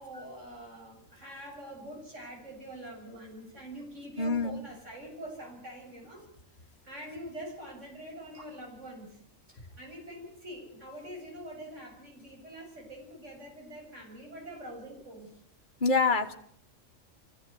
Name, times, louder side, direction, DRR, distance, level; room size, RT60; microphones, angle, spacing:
voice 1, 0.0-6.2 6.8-9.2 9.5-15.4, right 1 dB, 65° right, -1 dB, 8.0 m, -45 dB
voice 2, 4.2-4.6 15.8-16.3, left 4 dB, 40° left, 4 dB, 1.8 m, -26 dB
24.0 x 16.5 x 9.4 m, 0.67 s
omnidirectional pair, 1.3 m